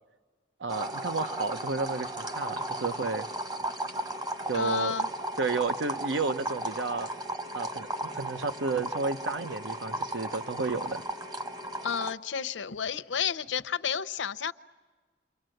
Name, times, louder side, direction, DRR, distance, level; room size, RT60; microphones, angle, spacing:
voice 1, 0.6-3.3 4.5-4.9 5.4-7.1 7.5-7.9 8.1-11.0, right 3 dB, 70° right, 10 dB, 0.9 m, -31 dB
sound 1, 0.7-12.1, right 1 dB, 20° right, 1.1 m, -35 dB
voice 2, 4.5-5.1 11.8-14.5, left 7 dB, 80° left, 13 dB, 0.7 m, -31 dB
28.5 x 24.0 x 7.8 m, 1.4 s
head